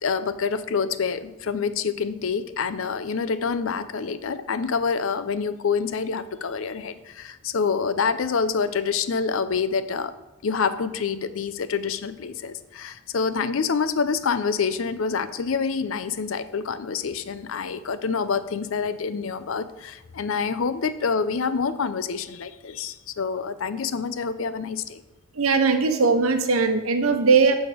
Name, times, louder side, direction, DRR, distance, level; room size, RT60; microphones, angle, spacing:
voice 1, 0.0-10.1 10.4-25.0, left 5 dB, 70° left, 13 dB, 0.5 m, -27 dB
voice 2, 25.3-27.6, right 4 dB, 90° right, 7 dB, 0.9 m, -19 dB
11.5 x 4.2 x 4.9 m, 1.0 s
head